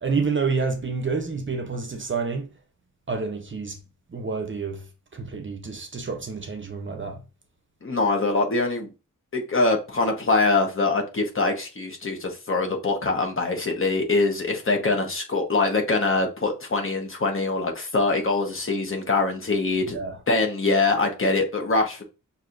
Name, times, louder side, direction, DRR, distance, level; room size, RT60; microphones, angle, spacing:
voice 1, 0.0-2.5 3.1-3.8 4.1-4.9 5.1-7.2 19.9-20.2, right 4 dB, 35° right, 0.7 m, -28 dB
voice 2, 7.8-8.9 9.3-20.0 20.3-22.0, left 3 dB, 40° left, 1.0 m, -23 dB
6.3 x 2.7 x 2.5 m
wide cardioid pair, 160°, 33 cm